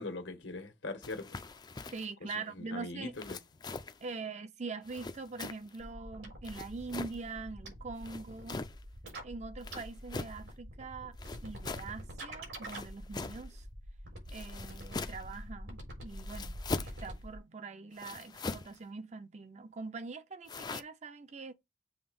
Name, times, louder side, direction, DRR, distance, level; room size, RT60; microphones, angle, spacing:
voice 1, 0.0-1.4 2.3-3.4, left 2 dB, 85° left, 1.5 m, -41 dB
sound 1, 1.0-2.1 3.1-4.0 4.8-5.8 6.4-7.2 8.0-8.8 9.6-10.4 11.2-11.9 12.6-13.5 14.3-15.3 16.1-17.1 18.0-18.8 20.5-20.8, left 3 dB, 20° left, 0.4 m, -41 dB
voice 2, 1.9-3.1 4.0-8.6 9.2-11.2 11.4-13.6 14.3-21.5, right 4 dB, 40° right, 0.6 m, -43 dB
sound 2, 5.8-17.4, right 1 dB, 90° right, 4.0 m, -46 dB
7.2 x 3.4 x 5.3 m
head